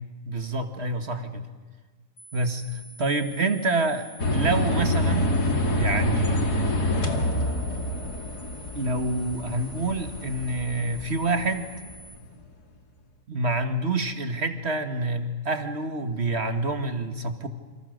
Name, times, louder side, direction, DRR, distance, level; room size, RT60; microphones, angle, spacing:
voice 1, 0.3-1.4 2.3-5.4 5.7-6.5 8.7-11.7 13.3-17.5, right 2 dB, 45° right, 8 dB, 1.9 m, -27 dB
sound 1, 2.2-12.2, right 1 dB, 45° left, 5.9 m, -48 dB
sound 2, 4.2-12.2, left 1 dB, 85° left, 2.9 m, -27 dB
28.5 x 26.5 x 6.6 m, 1.4 s
omnidirectional pair, 1.6 m